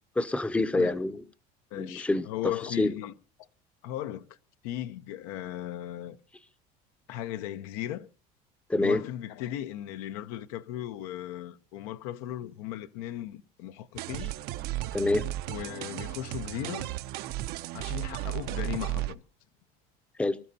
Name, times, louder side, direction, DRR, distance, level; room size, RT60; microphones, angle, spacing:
voice 1, 0.2-1.2 1.8-2.9 8.7-9.0 14.9-15.3 20.2-20.4, left 2 dB, 5° left, 0.6 m, -27 dB
voice 2, 1.7-3.1 3.8-4.2 4.6-6.2 7.1-8.1 8.8-14.3 15.5-16.9 17.7-19.2, left 12 dB, 90° left, 0.8 m, -37 dB
sound 1, 14.0-19.2, right 14 dB, 65° right, 0.6 m, -34 dB
24.5 x 12.5 x 2.8 m
cardioid pair, 130°, 18 cm